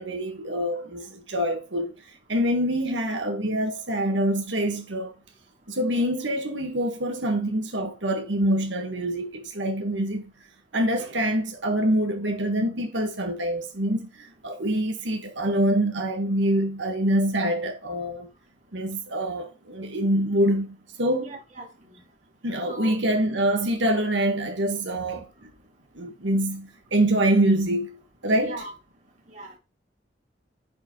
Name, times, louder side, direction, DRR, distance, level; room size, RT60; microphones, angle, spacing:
voice 1, 0.0-1.9 2.3-5.1 5.7-10.3 10.7-18.3 18.7-21.3 22.4-25.3 25.9-28.0 28.2-28.6, right 1 dB, 90° right, 1.5 m, -25 dB
voice 2, 21.2-21.7 22.7-23.0 28.4-28.7 29.3-29.6, right 2 dB, 40° right, 2.8 m, -38 dB
10.0 x 4.7 x 3.1 m
head